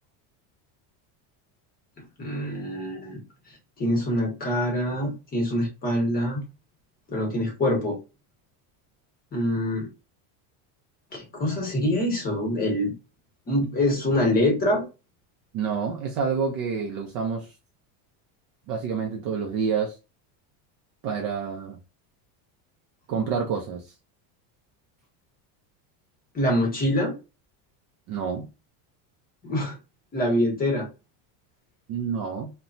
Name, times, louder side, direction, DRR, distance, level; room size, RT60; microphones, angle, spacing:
voice 1, 2.2-3.2 3.8-6.4 7.1-8.0 9.3-9.9 11.1-12.9 13.5-14.8 26.3-27.2 29.4-29.7 30.1-30.9, left 1 dB, 20° left, 0.8 m, -25 dB
voice 2, 15.5-17.5 18.7-20.0 21.0-21.8 23.1-23.9 28.1-28.5 31.9-32.5, right 6 dB, 40° right, 0.4 m, -28 dB
2.9 x 2.1 x 2.5 m
cardioid pair, 170°, 45 cm